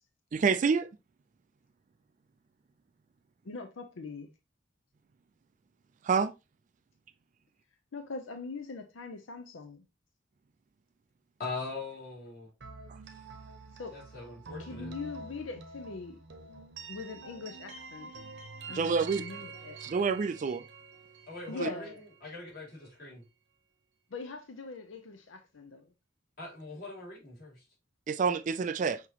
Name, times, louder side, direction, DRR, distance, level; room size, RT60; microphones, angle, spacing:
voice 1, 0.3-0.9 6.0-6.3 18.7-19.2 19.8-20.6 21.6-21.7 28.1-29.0, right 5 dB, 40° right, 0.3 m, -27 dB
voice 2, 3.4-4.3 7.9-9.8 13.8-14.0 14.6-16.2 16.9-18.1 18.7-19.8 21.5-22.0 24.1-25.9 28.8-29.0, left 3 dB, 80° left, 0.6 m, -42 dB
voice 3, 11.4-12.5 13.9-14.9 21.3-21.9 22.2-23.2 26.4-27.6, left 3 dB, 50° left, 2.4 m, -41 dB
sound 1, 12.6-22.4, right 3 dB, 65° right, 0.9 m, -47 dB
5.9 x 2.9 x 2.8 m
head